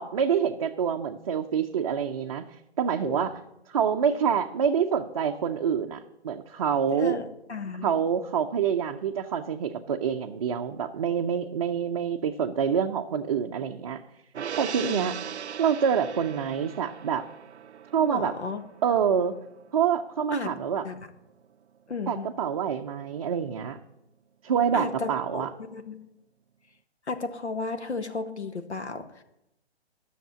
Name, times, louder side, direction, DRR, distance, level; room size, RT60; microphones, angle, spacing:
voice 1, 0.0-2.5 2.8-3.4 3.7-7.1 7.8-14.0 14.6-15.1 15.6-17.2 17.9-18.3 18.8-19.3 19.7-20.8 22.1-23.8 24.4-25.5, right 7 dB, 35° right, 3 dB, 0.5 m, -26 dB
voice 2, 6.9-7.2 7.5-7.9 14.8-15.1 18.0-18.6 20.3-20.5 20.8-21.1 21.9-22.3 24.7-26.0 27.1-29.2, left 4 dB, 85° left, 9 dB, 1.4 m, -34 dB
Gong, 14.3-21.0 21.3-21.4, right 8 dB, 85° right, 0.5 m, -40 dB
11.5 x 6.6 x 7.6 m, 0.85 s
figure-of-eight pair, 140°, 33 cm